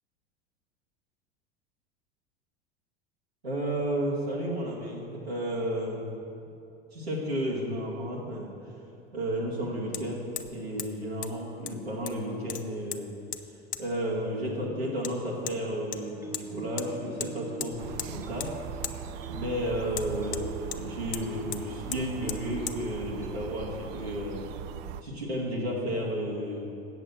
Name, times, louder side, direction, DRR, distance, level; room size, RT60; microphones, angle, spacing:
voice 1, 3.4-6.1 6.9-8.8 9.1-13.2 13.8-18.5 19.3-24.4 25.0-26.8, equal, 85° right, -5 dB, 1.9 m, -32 dB
Hammer, 8.0-8.1 9.9-10.0 10.4-10.5 10.8-10.9 11.2-11.3 11.7-12.2 12.5-13.0 13.3-13.4 13.7-13.8 15.0-15.1 15.5-15.6 15.9-16.5 16.8-16.9 17.2-17.3 17.6-18.1 18.4-18.5 18.8-19.0 19.9-20.8 21.1-21.3 21.5-21.6 21.9-22.0 22.3-22.4 22.7-22.8, left 11 dB, 25° left, 0.5 m, -36 dB
sound 1, 16.1-23.4, right 3 dB, 10° right, 1.0 m, -44 dB
sound 2, 17.8-25.0, right 9 dB, 40° right, 0.4 m, -40 dB
7.9 x 7.7 x 7.9 m, 2.7 s
figure-of-eight pair, 75°, 30 cm